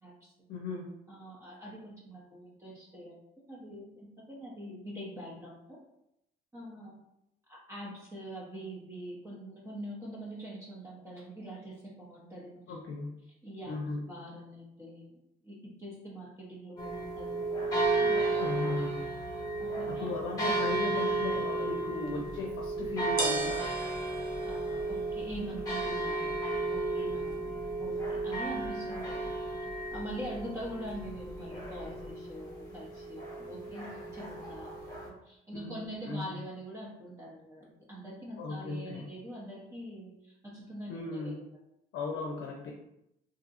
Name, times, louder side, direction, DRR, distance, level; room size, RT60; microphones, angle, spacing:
voice 1, 0.5-0.9 12.7-13.2 13.7-14.0 18.4-19.0 19.9-23.6 35.5-36.3 38.4-39.0 40.9-41.3 41.9-42.7, left 3 dB, 80° left, -1 dB, 0.6 m, -37 dB
voice 2, 1.1-3.1 3.5-5.8 6.5-7.0 7.5-12.8 13.4-13.8 14.1-15.1 15.4-18.4 19.6-20.1 24.4-29.3 29.6-41.5, right 1 dB, 15° right, -6 dB, 0.7 m, -44 dB
sound 1, 16.8-35.1, right 2 dB, 15° left, 1.0 m, -33 dB
sound 2, 22.0-32.1, right 1 dB, 45° right, 0.8 m, -43 dB
2.8 x 2.6 x 2.5 m, 0.82 s
cardioid pair, 90°, 20 cm